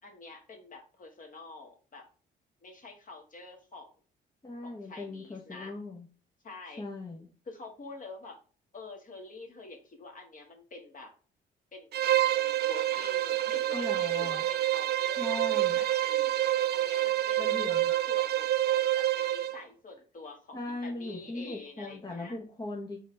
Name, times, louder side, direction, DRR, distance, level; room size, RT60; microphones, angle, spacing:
voice 1, 0.0-2.1 2.6-3.9 4.6-5.7 6.4-6.9 7.4-8.4 8.7-11.1 11.7-22.4, left 3 dB, 40° left, 2 dB, 1.6 m, -47 dB
voice 2, 4.4-6.1 6.8-7.3 13.7-14.4 15.2-15.8 17.4-17.9 20.5-23.0, left 2 dB, 20° left, 0 dB, 0.9 m, -39 dB
Bowed string instrument, 11.9-19.6, right 13 dB, 55° right, 0.4 m, -27 dB
4.0 x 3.9 x 3.3 m, 0.37 s
cardioid pair, 90°, 20 cm